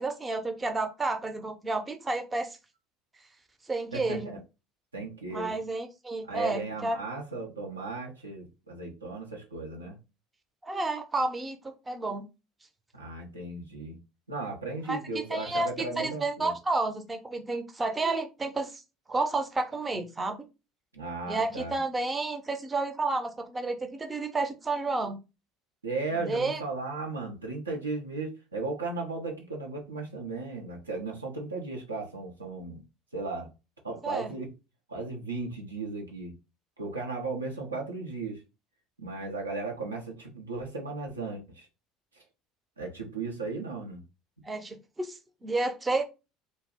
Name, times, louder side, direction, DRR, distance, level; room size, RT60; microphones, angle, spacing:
voice 1, 0.0-2.6 3.7-4.4 5.3-7.0 10.6-12.2 14.9-18.8 19.1-20.4 21.3-25.2 26.1-26.6 34.0-34.3 44.4-46.0, right 3 dB, 20° right, 6 dB, 0.6 m, -31 dB
voice 2, 3.9-4.4 4.9-5.6 6.2-10.0 12.9-14.0 14.3-16.5 20.9-21.8 25.8-32.8 33.1-33.5 33.8-34.5 34.9-36.3 36.8-38.4 39.0-41.7 42.1-42.2 42.8-44.0, right 3 dB, 90° right, 0 dB, 0.6 m, -36 dB
2.2 x 2.0 x 3.5 m, 0.28 s
hypercardioid pair, 65°, 0 cm